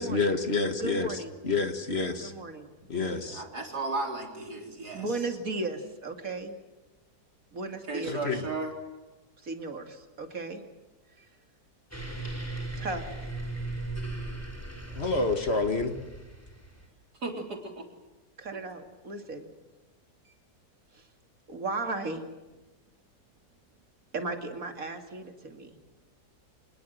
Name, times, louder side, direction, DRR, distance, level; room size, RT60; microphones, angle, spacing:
voice 1, 0.0-1.2 1.4-2.3 2.9-3.4 8.0-8.4 14.9-15.9, left 3 dB, 40° left, 7 dB, 1.8 m, -28 dB
voice 2, 0.8-1.3 2.2-2.7 4.9-6.5 7.5-8.1 9.4-10.6 12.8-13.1 18.4-19.5 20.9-21.0 21.5-22.2 24.1-25.8, right 3 dB, 60° right, 5 dB, 2.8 m, -35 dB
voice 3, 3.0-5.3 7.9-8.8 17.2-17.9 18.5-18.6 20.3-20.4, right 3 dB, 80° right, 2 dB, 4.3 m, -35 dB
sound 1, 11.9-16.9, right 2 dB, 10° left, 3.4 m, -37 dB
26.0 x 20.5 x 7.9 m, 1.1 s
omnidirectional pair, 1.7 m